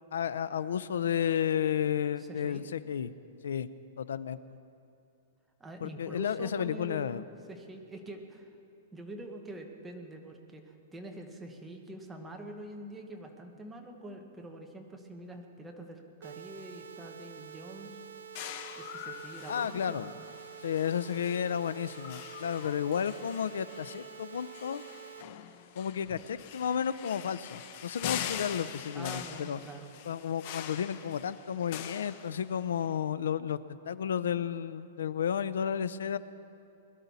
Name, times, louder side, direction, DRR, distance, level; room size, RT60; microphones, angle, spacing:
voice 1, 0.1-3.1 3.4-3.7 4.0-4.4 5.8-7.2 19.5-20.1 20.6-24.8 25.8-29.6 30.1-33.6 33.9-36.2, left 8 dB, 90° left, 16 dB, 0.5 m, -32 dB
voice 2, 2.2-2.6 5.6-8.5 8.9-18.0 18.7-20.1 28.9-30.0, right 1 dB, 5° right, 2 dB, 0.9 m, -45 dB
sound 1, 16.2-25.2, right 8 dB, 80° right, 0.5 m, -48 dB
sound 2, 18.3-32.8, left 10 dB, 35° left, 0.6 m, -43 dB
21.5 x 12.0 x 4.1 m, 2.6 s
hypercardioid pair, 175°, 0 cm